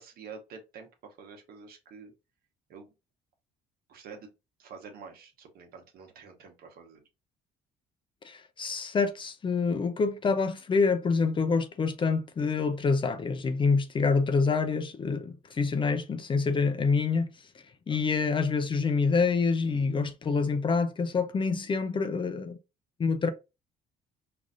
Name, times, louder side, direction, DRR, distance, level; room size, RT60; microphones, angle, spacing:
voice 1, 0.0-2.1 2.7-2.9 3.9-4.3 4.6-7.0 17.9-18.2, right 5 dB, 65° right, 1.0 m, -48 dB
voice 2, 8.2-17.3 17.9-22.6 23.0-23.3, left 4 dB, 30° left, 0.5 m, -26 dB
4.7 x 2.5 x 2.6 m
cardioid pair, 110°, 17 cm